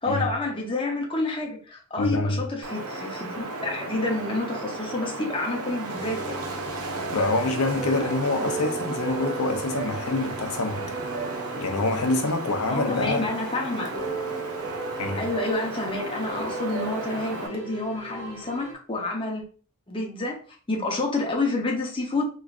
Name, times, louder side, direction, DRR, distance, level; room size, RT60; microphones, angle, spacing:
voice 1, 0.0-6.3 12.7-13.9 15.2-19.4 19.9-20.4 20.7-22.2, left 2 dB, 25° left, 0.7 m, -29 dB
voice 2, 2.0-2.4 7.1-10.8 11.6-13.3 15.0-15.3, left 2 dB, 85° left, 0.6 m, -26 dB
Wind, 2.6-17.5, right 2 dB, 85° right, 0.6 m, -34 dB
sound 1, 5.9-18.7, right 3 dB, 55° right, 1.2 m, -37 dB
3.6 x 3.1 x 2.4 m
head